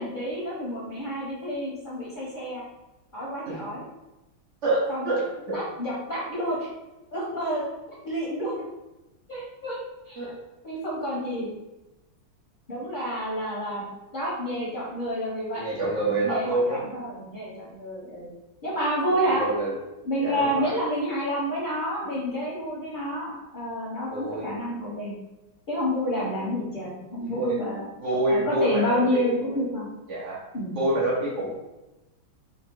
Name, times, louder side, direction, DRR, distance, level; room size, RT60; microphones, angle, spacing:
voice 1, 0.0-2.6 3.1-3.8 4.9-5.1 5.5-6.7 7.1-7.7 8.0-8.5 9.3-9.8 10.1-10.3 10.6-11.5 12.7-13.8 14.1-15.6 16.2-18.3 18.6-19.4 20.0-25.1 25.7-27.9 28.3-29.9 30.5-30.8, equal, 40° left, -6 dB, 0.7 m, -29 dB
voice 2, 4.6-5.2 5.5-5.6 10.2-10.3 15.6-16.8 19.3-19.7 20.2-20.8 24.1-24.5 27.3-27.6 28.0-29.4 30.1-30.4 30.8-31.6, right 1 dB, 55° right, -4 dB, 0.8 m, -26 dB
3.6 x 2.4 x 4.4 m, 1.0 s
omnidirectional pair, 2.2 m